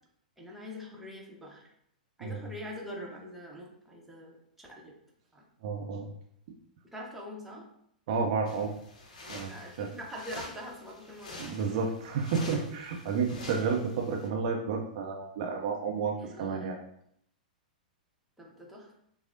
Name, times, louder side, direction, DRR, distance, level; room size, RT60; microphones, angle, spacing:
voice 1, 0.4-1.7 2.2-4.9 5.3-5.4 6.9-7.7 9.5-11.8 12.7-13.8 16.1-16.8 18.4-18.9, equal, 5° right, -3 dB, 0.8 m, -44 dB
voice 2, 5.6-6.1 8.1-8.7 9.3-9.5 9.8-9.9 11.4-16.8, right 5 dB, 50° right, 1 dB, 0.5 m, -31 dB
sound 1, 8.5-14.3, left 2 dB, 60° left, 0.7 m, -47 dB
5.8 x 2.0 x 2.6 m, 0.71 s
figure-of-eight pair, 100°, 5 cm